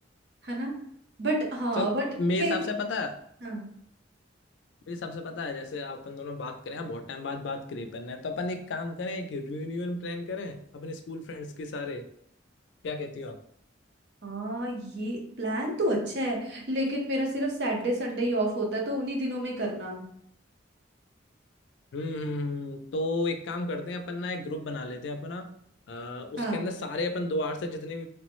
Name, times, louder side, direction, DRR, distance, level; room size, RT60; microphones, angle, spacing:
voice 1, 0.4-0.8 1.2-2.1 2.4-2.6 3.4-3.6 14.2-20.0 26.4-26.7, right 1 dB, 60° right, 1 dB, 0.7 m, -29 dB
voice 2, 2.2-3.1 4.9-12.1 12.8-13.4 21.9-25.5 25.9-28.1, left 2 dB, 70° left, 6 dB, 0.4 m, -33 dB
3.2 x 2.0 x 3.0 m, 0.70 s
head